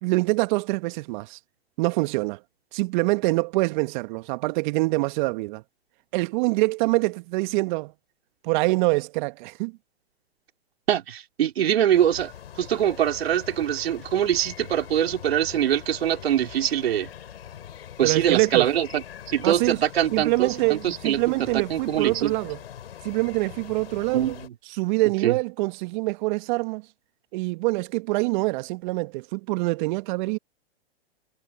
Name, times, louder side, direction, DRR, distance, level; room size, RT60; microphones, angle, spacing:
voice 1, 0.0-1.4 1.8-2.4 2.7-5.6 6.1-7.9 8.4-9.7 18.0-18.7 19.4-19.8 20.1-22.6 23.0-24.4 24.7-26.8 27.3-30.4, right 24 dB, 45° right, 1.4 m, -25 dB
voice 2, 10.9-12.3 12.6-17.1 18.0-18.9 19.3-21.2 21.7-22.3 24.1-24.3 25.2-25.3, right 10 dB, 70° right, 4.4 m, -23 dB
sound 1, 11.9-24.5, left 10 dB, 70° left, 6.5 m, -43 dB
hypercardioid pair, 110°, 32 cm